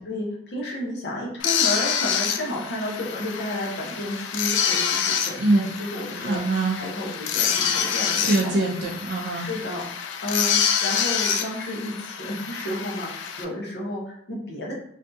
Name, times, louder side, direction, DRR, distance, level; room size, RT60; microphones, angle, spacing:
voice 1, 0.0-6.4 6.7-8.6 9.3-14.7, left 1 dB, 60° left, -3 dB, 0.8 m, -32 dB
sound 1, 1.4-13.4, left 7 dB, 75° left, 0.3 m, -27 dB
voice 2, 6.2-6.8 8.2-9.5, right 2 dB, 70° right, -1 dB, 0.4 m, -23 dB
2.6 x 2.3 x 2.5 m, 0.71 s
head